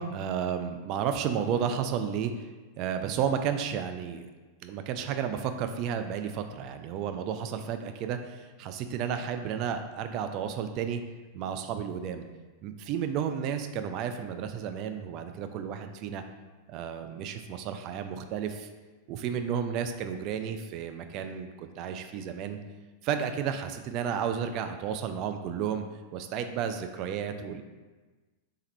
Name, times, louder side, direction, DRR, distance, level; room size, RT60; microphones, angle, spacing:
voice 1, 0.0-2.5 2.8-4.3 4.6-11.0 11.3-12.2 12.6-16.2 16.7-18.7 19.1-22.6 23.0-25.8 26.1-27.6, right 8 dB, 40° right, 7 dB, 0.3 m, -32 dB
3.4 x 3.2 x 3.2 m, 1.3 s
figure-of-eight pair, 90°, 0 cm